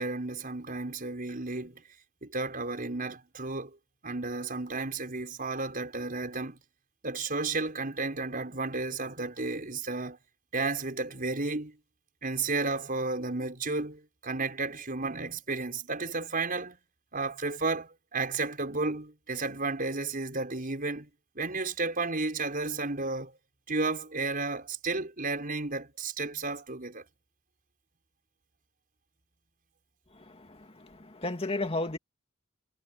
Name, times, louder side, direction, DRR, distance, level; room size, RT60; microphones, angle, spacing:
voice 1, 0.0-1.8 2.2-3.8 4.0-6.6 7.0-10.2 10.5-11.8 12.2-16.8 17.1-21.1 21.3-23.4 23.7-27.0, right 3 dB, 45° right, 6.0 m, -33 dB
voice 2, 30.1-32.0, left 2 dB, 30° left, 2.4 m, -34 dB
head